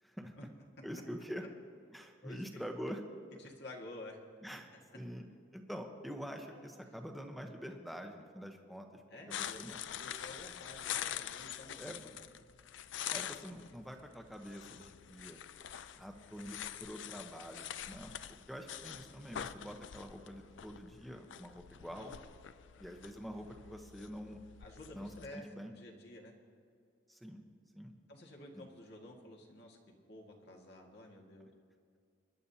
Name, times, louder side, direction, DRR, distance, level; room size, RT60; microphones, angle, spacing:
voice 1, 0.0-0.3 0.8-1.4 1.9-3.0 4.4-4.7 4.9-5.2 5.5-9.0 9.3-9.8 11.8-12.1 13.1-15.4 15.9-22.1 22.8-24.4 24.9-25.7 27.1-27.4 27.7-27.9 28.5-28.6, equal, ahead, 4 dB, 1.0 m, -46 dB
voice 2, 2.2-2.6 3.4-4.2 6.5-6.7 9.1-9.6 10.0-12.2 22.0-22.1 24.6-26.3 28.1-29.8 30.1-31.5, left 1 dB, 60° left, 0 dB, 1.8 m, -51 dB
sound 1, 9.3-25.3, left 10 dB, 75° left, 0.4 m, -45 dB
24.0 x 11.0 x 2.8 m, 2.4 s
head